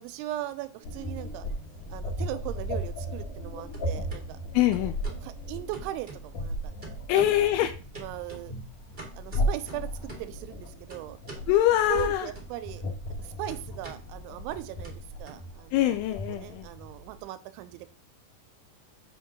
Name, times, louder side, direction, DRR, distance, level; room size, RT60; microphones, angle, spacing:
voice 1, 0.0-1.5 1.9-4.4 5.2-6.7 7.1-7.3 8.0-8.6 9.1-11.2 11.9-12.8 13.2-15.8 16.3-17.9, right 15 dB, 85° right, 12 dB, 3.0 m, -38 dB
sound 1, 0.6-1.6 1.9-3.5 3.7-4.2 4.7-5.3 5.7-6.5 6.8-7.5 7.9-10.4 10.9-11.5 12.0-12.8 13.1-15.9, right 3 dB, 70° right, 0.5 m, -47 dB
sound 2, 0.8-17.2, equal, 60° left, 2.1 m, -36 dB
voice 2, 4.5-5.0 7.1-7.7 11.5-12.3 15.7-16.7, left 13 dB, 90° left, 8 dB, 3.1 m, -24 dB
7.7 x 3.7 x 5.9 m, 0.36 s
omnidirectional pair, 5.5 m